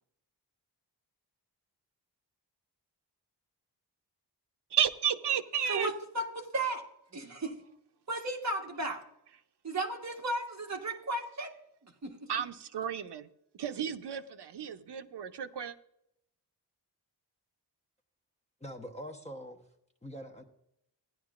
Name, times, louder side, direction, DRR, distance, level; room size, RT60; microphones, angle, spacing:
voice 1, 4.7-5.9 12.3-13.3 13.6-15.7, right 9 dB, 70° right, 0.7 m, -32 dB
voice 2, 5.7-6.8 7.1-7.6 8.1-9.0 9.6-11.5 11.8-12.5, right 2 dB, 40° right, 1.5 m, -35 dB
voice 3, 18.6-19.6 20.0-20.4, equal, 15° left, 1.0 m, -43 dB
16.0 x 10.5 x 2.5 m
wide cardioid pair, 165°, 42 cm